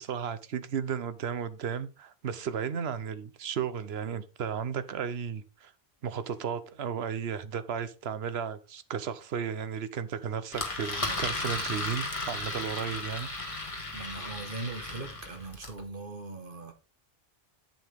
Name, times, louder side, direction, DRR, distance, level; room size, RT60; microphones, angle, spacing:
voice 1, 0.0-5.7 6.0-13.3, right 7 dB, 75° right, 1.0 m, -34 dB
Engine, 10.5-15.8, left 2 dB, 30° left, 1.9 m, -35 dB
voice 2, 11.0-11.3 13.9-16.7, right 3 dB, 55° right, 1.6 m, -40 dB
7.8 x 7.7 x 3.5 m
omnidirectional pair, 1.1 m